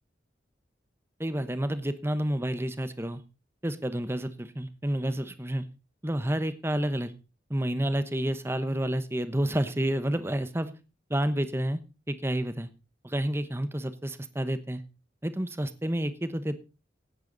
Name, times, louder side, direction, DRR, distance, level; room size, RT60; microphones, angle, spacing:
voice 1, 1.2-3.2 3.6-5.6 6.0-7.1 7.5-10.7 11.1-11.8 12.1-12.7 13.0-14.8 15.2-16.6, right 1 dB, 15° right, 12 dB, 1.0 m, -29 dB
16.5 x 11.5 x 4.0 m, 0.32 s
head